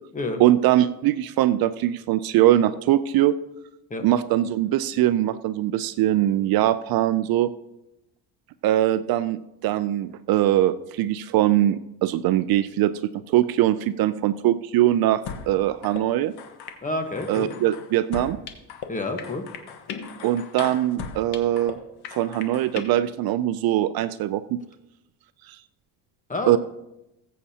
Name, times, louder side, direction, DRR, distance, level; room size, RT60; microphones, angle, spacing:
voice 1, 0.4-3.3 4.0-7.5 8.6-12.9 13.3-16.3 17.3-18.4 20.2-21.8 22.1-24.6 25.5-25.6 26.5-26.6, right 13 dB, 60° right, 14 dB, 0.5 m, -22 dB
sound 1, 15.3-15.5 15.8-16.0 16.4-16.8 17.2-18.9 19.2-21.7 22.0-22.8, left 7 dB, 70° left, 1.4 m, -37 dB
voice 2, 16.8-17.5 18.9-19.4 26.3-26.6, left 2 dB, 20° left, 5 dB, 1.2 m, -29 dB
19.5 x 8.4 x 2.8 m, 0.91 s
cardioid pair, 135°, 41 cm